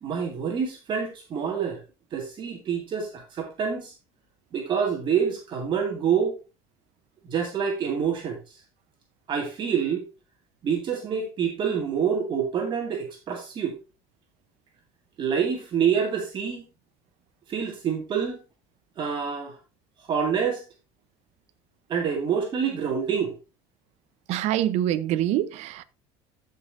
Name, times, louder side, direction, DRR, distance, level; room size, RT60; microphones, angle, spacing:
voice 1, 0.0-1.8 2.1-3.9 4.5-6.4 7.2-8.4 9.3-10.0 10.6-13.8 15.2-16.6 17.5-18.4 19.0-19.6 20.1-20.6 21.9-23.3, right 7 dB, 40° right, 2.0 m, -27 dB
voice 2, 24.3-25.8, right 12 dB, 60° right, 0.8 m, -25 dB
14.5 x 5.6 x 2.6 m
cardioid pair, 130°, 13 cm